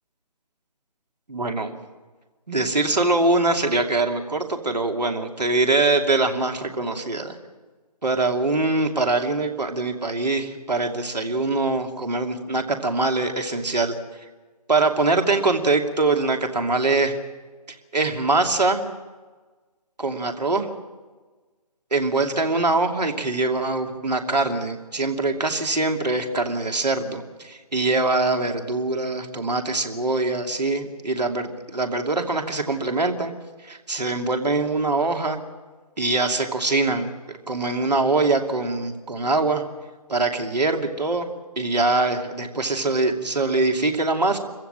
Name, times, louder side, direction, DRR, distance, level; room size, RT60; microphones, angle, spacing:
voice 1, 1.3-1.8 2.5-7.4 8.0-13.9 14.7-17.2 17.9-18.9 20.0-20.7 21.9-33.3 33.6-35.4 36.0-37.1 37.5-39.6 40.1-41.3 41.6-44.4, right 3 dB, 85° right, 3 dB, 2.7 m, -23 dB
26.5 x 15.0 x 7.6 m, 1.3 s
figure-of-eight pair, 145°, 21 cm